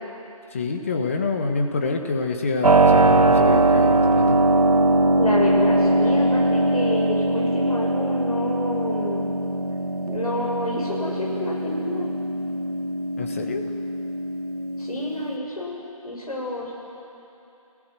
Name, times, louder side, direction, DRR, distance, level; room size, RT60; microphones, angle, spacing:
voice 1, 0.5-4.4 13.2-13.6, left 4 dB, 20° left, 4 dB, 1.3 m, -26 dB
Keyboard (musical), 2.6-15.4, right 2 dB, 90° right, 1.8 m, -21 dB
voice 2, 5.2-9.2 10.1-12.1 14.8-15.8 16.0-16.7, left 1 dB, 80° left, -3 dB, 7.3 m, -29 dB
27.5 x 17.0 x 7.6 m, 2.8 s
figure-of-eight pair, 175°, 19 cm